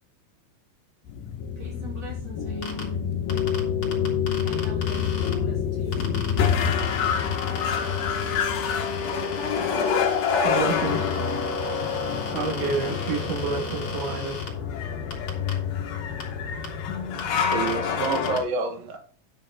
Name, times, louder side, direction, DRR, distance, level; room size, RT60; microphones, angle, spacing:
sound 1, 1.1-18.4, left 7 dB, 90° left, 3.2 m, -27 dB
voice 1, 1.6-2.9 4.4-6.2, right 2 dB, 30° right, 3.7 m, -43 dB
sound 2, 2.6-2.8 3.3-5.3 5.9-14.5 15.1-15.5 16.2-16.3 16.6-16.7 17.2-17.7 18.0-18.4, left 4 dB, 45° left, 3.3 m, -38 dB
Wind instrument woodwind instrument, 7.0-10.5, left 5 dB, 70° left, 2.0 m, -36 dB
voice 2, 10.4-11.3 12.1-14.4 16.4-16.5, right 5 dB, 70° right, 3.3 m, -29 dB
voice 3, 17.5-19.0, right 4 dB, 85° right, 3.2 m, -28 dB
10.5 x 7.8 x 3.8 m
omnidirectional pair, 4.0 m